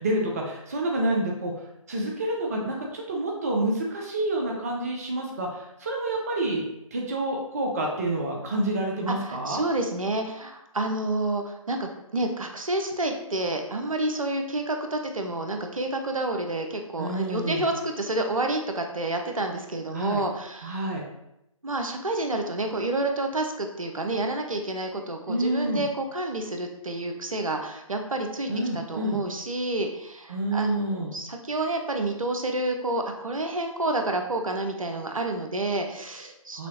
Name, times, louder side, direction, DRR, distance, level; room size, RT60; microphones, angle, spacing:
voice 1, 0.0-1.5 1.9-6.6 6.9-9.6 17.0-17.7 19.9-20.2 20.6-21.0 25.3-25.8 28.5-29.2 30.3-31.1 36.5-36.7, right 1 dB, 25° right, 0 dB, 0.6 m, -28 dB
voice 2, 9.1-20.8 21.6-28.5 28.9-36.7, right 2 dB, 70° right, 4 dB, 0.7 m, -29 dB
6.0 x 2.8 x 3.0 m, 0.85 s
figure-of-eight pair, 145°, 18 cm